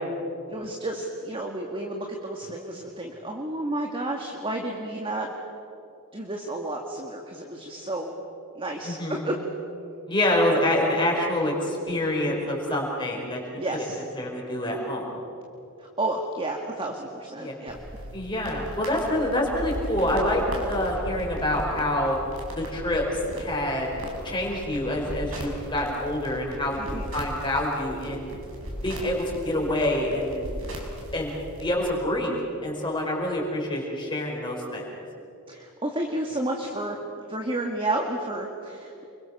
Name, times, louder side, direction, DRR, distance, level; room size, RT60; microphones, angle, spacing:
voice 1, 0.5-5.3 6.1-8.1 8.6-9.0 9.2-9.3 13.6-14.0 15.8-17.8 26.8-27.1 35.5-37.0 37.3-39.1, right 1 dB, 25° right, 1 dB, 1.8 m, -31 dB
voice 2, 8.8-9.2 10.1-13.4 14.2-15.2 17.4-17.5 18.1-22.2 22.5-23.0 23.3-23.9 24.2-28.3 28.8-30.5 31.1-31.3 31.6-34.8, left 1 dB, 20° left, -2 dB, 5.3 m, -26 dB
sound 1, 17.7-31.7, equal, 65° right, 5.9 m, -37 dB
29.0 x 23.0 x 6.9 m, 2.8 s
head